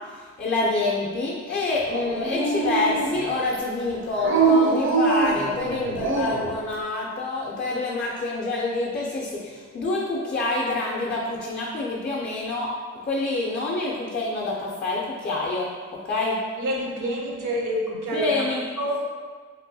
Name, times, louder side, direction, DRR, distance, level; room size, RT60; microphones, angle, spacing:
voice 1, 0.1-12.7 13.0-16.4 18.1-18.6, left 2 dB, 35° left, -4 dB, 0.4 m, -27 dB
Dog, 1.9-3.4 4.2-6.5, right 4 dB, 45° right, 0.5 m, -24 dB
voice 2, 16.6-18.3 18.8-19.0, equal, 80° right, -2 dB, 0.7 m, -27 dB
3.0 x 2.8 x 2.6 m, 1.5 s
wide cardioid pair, 135°, 30 cm